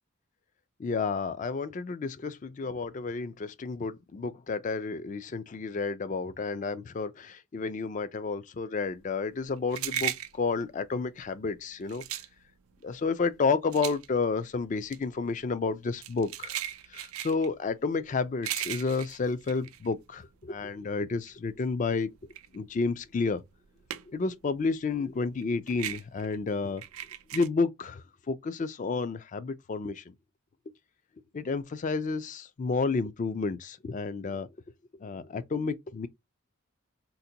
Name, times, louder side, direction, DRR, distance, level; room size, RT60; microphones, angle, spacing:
voice 1, 0.8-12.0 12.8-16.6 16.9-22.1 22.5-23.4 24.1-26.8 27.3-30.1 31.3-34.5 35.0-36.1, left 4 dB, 35° left, 0.3 m, -31 dB
sound 1, 9.0-20.6 20.9-24.4 24.6-27.5, right 11 dB, 85° right, 0.4 m, -38 dB
3.8 x 2.1 x 2.7 m
head